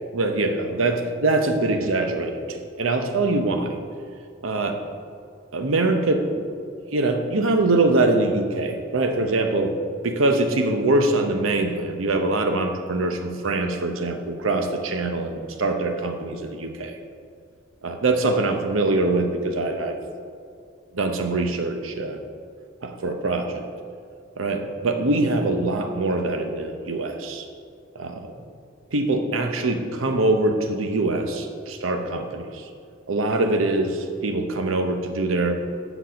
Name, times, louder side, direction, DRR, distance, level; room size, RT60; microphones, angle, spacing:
voice 1, 0.1-3.7 4.4-4.8 5.5-6.4 6.9-9.8 10.0-17.0 17.8-20.0 20.9-22.2 22.8-23.7 24.4-27.4 27.9-28.3 28.9-32.5 33.1-35.6, right 2 dB, 85° right, 5 dB, 0.8 m, -23 dB
8.1 x 6.1 x 5.1 m, 2.2 s
head